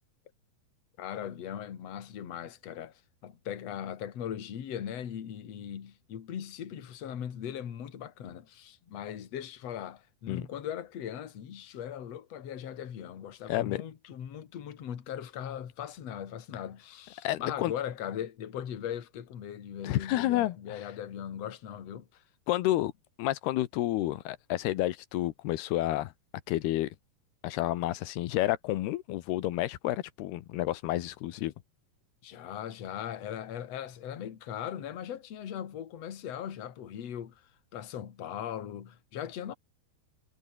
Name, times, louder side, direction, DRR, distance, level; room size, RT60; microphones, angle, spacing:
voice 1, 1.0-2.9 3.2-22.2 32.2-37.4 37.7-39.5, left 9 dB, 45° left, 2.8 m, -39 dB
voice 2, 13.5-13.8 17.2-17.7 19.8-20.8 22.5-22.9 23.2-26.1 26.5-26.9 27.4-31.5, left 15 dB, 85° left, 3.1 m, -30 dB
omnidirectional pair, 4.5 m